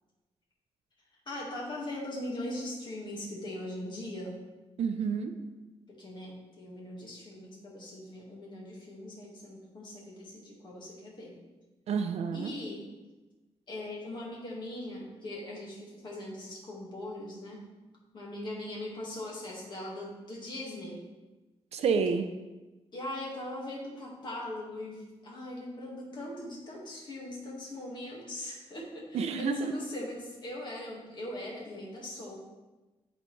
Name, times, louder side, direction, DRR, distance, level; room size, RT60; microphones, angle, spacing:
voice 1, 1.3-4.4 5.9-11.4 12.3-12.9 13.7-17.7 18.1-21.0 22.9-32.4, left 1 dB, 45° left, -4 dB, 1.8 m, -40 dB
voice 2, 4.8-5.3 11.9-12.5 21.7-22.3 29.1-29.7, right 5 dB, 90° right, 7 dB, 0.6 m, -29 dB
11.0 x 4.0 x 3.2 m, 1.2 s
wide cardioid pair, 170°, 11 cm